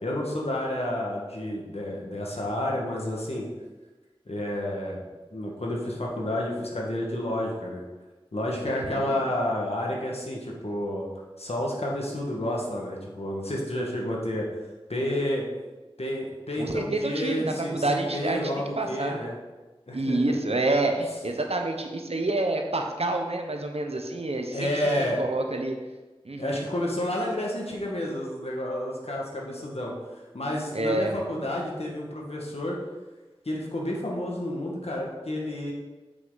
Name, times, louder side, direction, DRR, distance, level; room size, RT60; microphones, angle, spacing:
voice 1, 0.0-3.5 4.2-5.0 5.3-7.8 8.3-11.1 11.4-14.5 14.9-15.4 16.0-19.3 19.9-20.4 24.5-25.2 26.4-29.9 30.3-32.8 33.4-35.7, left 1 dB, 90° left, -2 dB, 1.6 m, -30 dB
voice 2, 8.7-9.3 16.6-18.4 18.8-19.3 19.9-24.7 25.2-25.8 26.2-26.7 30.7-31.1, right 2 dB, 90° right, 3 dB, 0.9 m, -28 dB
7.7 x 5.9 x 4.0 m, 1.2 s
wide cardioid pair, 40°, 10 cm